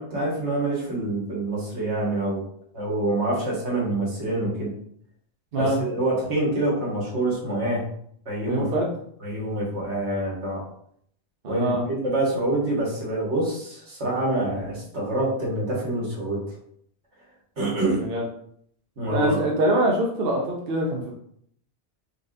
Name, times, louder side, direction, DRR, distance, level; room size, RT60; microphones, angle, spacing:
voice 1, 0.0-2.4 2.7-4.7 5.6-7.9 8.3-8.7 9.2-10.6 11.4-16.4 17.6-18.1 19.0-19.4, right 1 dB, 85° right, -4 dB, 1.7 m, -26 dB
voice 2, 8.5-8.9 11.4-11.8 18.0-18.3 19.1-21.1, right 1 dB, 60° right, -1 dB, 0.9 m, -24 dB
3.9 x 3.7 x 2.7 m, 0.66 s
omnidirectional pair, 1.1 m